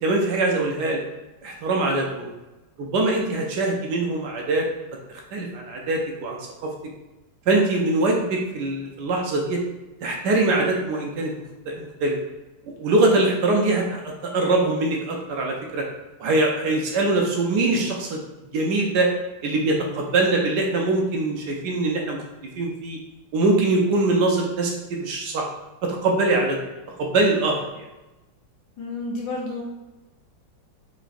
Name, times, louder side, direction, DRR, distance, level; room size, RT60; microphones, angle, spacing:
voice 1, 0.0-1.0 1.4-2.3 2.8-4.7 5.3-6.7 7.5-9.6 10.0-11.3 11.7-12.2 12.8-15.8 16.2-18.2 18.5-19.1 19.4-22.2 22.6-23.0 23.3-25.5 25.8-26.6 27.0-27.9, right 2 dB, 70° right, 0 dB, 1.1 m, -23 dB
voice 2, 12.9-13.2 28.8-29.6, left 2 dB, 75° left, -3 dB, 1.7 m, -31 dB
4.7 x 3.0 x 2.5 m, 1.0 s
omnidirectional pair, 2.1 m